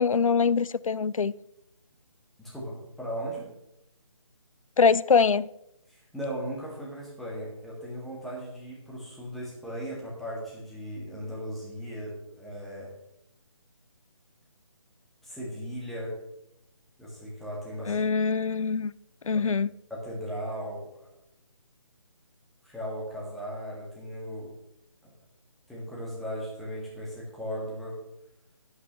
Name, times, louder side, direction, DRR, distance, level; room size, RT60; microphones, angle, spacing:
voice 1, 0.0-1.3 4.8-5.5 17.9-18.9 19.2-19.7, left 5 dB, 80° left, 0.4 m, -23 dB
voice 2, 2.4-3.5 5.9-12.9 15.2-16.1 17.0-18.0 19.3-19.4 19.9-21.1 22.6-24.5 25.0-25.1 25.7-28.0, equal, ahead, 1.9 m, -37 dB
12.0 x 9.7 x 3.1 m
figure-of-eight pair, 155°, 17 cm